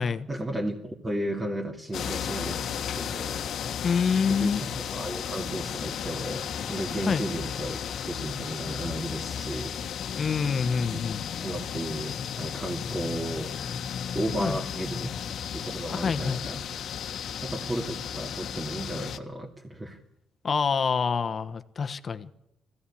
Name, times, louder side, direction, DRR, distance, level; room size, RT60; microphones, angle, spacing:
voice 1, 0.3-3.4 4.3-7.8 8.1-9.8 10.8-11.0 11.4-13.6 14.1-15.1 15.5-16.6 17.4-20.0, right 1 dB, 20° right, 1 dB, 2.4 m, -34 dB
sound 1, 1.9-19.2, left 8 dB, 65° left, 1.4 m, -34 dB
voice 2, 3.8-4.6 7.1-7.2 10.2-11.2 14.4-14.6 15.9-16.4 20.4-22.3, left 6 dB, 45° left, 11 dB, 1.2 m, -26 dB
20.5 x 16.0 x 8.6 m, 0.87 s
cardioid pair, 90°, 0 cm